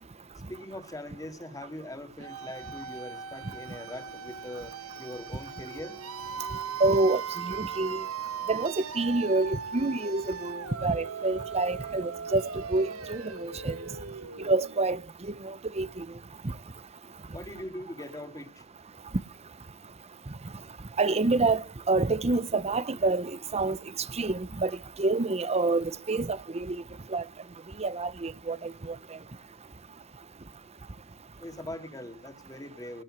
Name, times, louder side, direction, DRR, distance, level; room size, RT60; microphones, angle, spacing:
voice 1, 0.5-4.7 5.0-6.0 17.3-18.6 31.4-33.0, left 1 dB, 15° left, 2.4 m, -41 dB
sound 1, 2.2-15.0, right 6 dB, 85° right, 1.4 m, -39 dB
voice 2, 6.8-8.0 8.5-12.4 12.7-13.8 14.4-15.0 15.3-16.0 21.0-23.8 24.1-26.8 27.1-27.2 27.8-29.0, right 3 dB, 30° right, 0.8 m, -27 dB
18.5 x 8.9 x 7.6 m
head